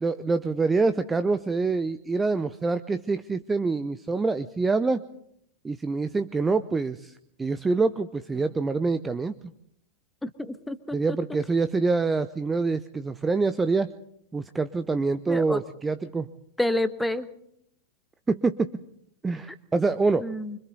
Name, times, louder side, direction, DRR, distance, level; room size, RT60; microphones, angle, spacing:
voice 1, 0.0-5.0 5.6-7.1 7.4-9.4 10.9-13.9 14.3-16.3 18.3-18.7 19.2-20.3, right 3 dB, 15° right, 13 dB, 0.7 m, -25 dB
voice 2, 10.2-11.0 15.3-15.6 16.6-17.3 20.2-20.6, left 1 dB, 5° left, 11 dB, 1.3 m, -28 dB
25.5 x 25.0 x 4.0 m, 0.71 s
figure-of-eight pair, 90°, 0 cm